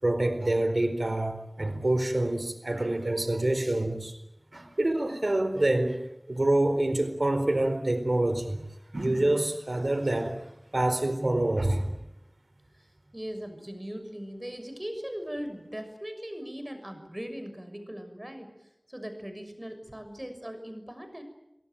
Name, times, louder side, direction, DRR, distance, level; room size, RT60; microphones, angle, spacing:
voice 1, 0.0-4.1 4.5-6.0 6.3-8.6 8.9-11.9, right 1 dB, 70° right, 9 dB, 4.4 m, -26 dB
voice 2, 13.1-18.5 18.9-21.2, equal, 25° right, 7 dB, 6.5 m, -39 dB
29.0 x 18.0 x 9.2 m, 0.86 s
wide cardioid pair, 40°, 0 cm